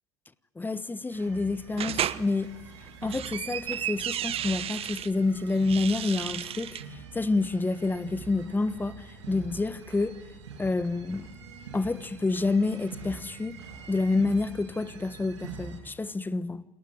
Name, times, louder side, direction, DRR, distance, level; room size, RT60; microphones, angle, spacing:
voice 1, 0.6-2.5 3.0-6.8 7.1-10.2 10.6-11.3 11.7-13.6 13.9-16.6, left 3 dB, 15° left, 1.3 m, -28 dB
sound 1, 1.1-15.8, right 5 dB, 85° right, 6.7 m, -45 dB
sound 2, 1.8-2.2 2.9-5.1 5.6-6.8, right 11 dB, 40° right, 1.1 m, -33 dB
28.5 x 19.5 x 9.5 m
hypercardioid pair, 80°, 15 cm